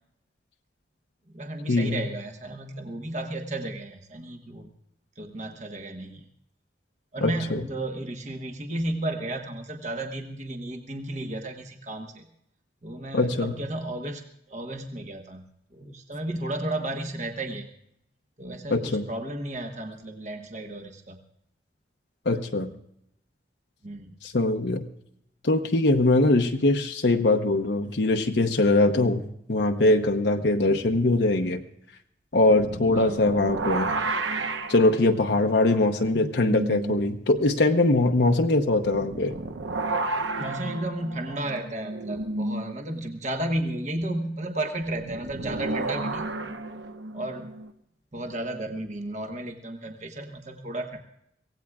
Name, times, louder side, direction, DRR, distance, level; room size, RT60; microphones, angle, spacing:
voice 1, 1.3-4.7 5.2-6.3 7.1-12.3 12.8-15.4 15.7-17.7 18.4-21.2 23.8-24.1 32.9-33.2 40.4-46.3 47.1-47.5 48.1-51.0, right 1 dB, 40° right, 3 dB, 1.2 m, -33 dB
voice 2, 7.2-7.6 13.1-13.5 18.7-19.1 22.3-22.7 24.2-24.9 25.4-29.2 29.5-31.6 32.3-34.0 34.7-39.3, left 2 dB, 65° left, 4 dB, 0.8 m, -22 dB
sound 1, 32.5-37.0 37.3-37.4 38.7-42.7 44.8-47.7, right 2 dB, 80° right, 1.0 m, -32 dB
24.0 x 17.0 x 2.4 m, 0.74 s
head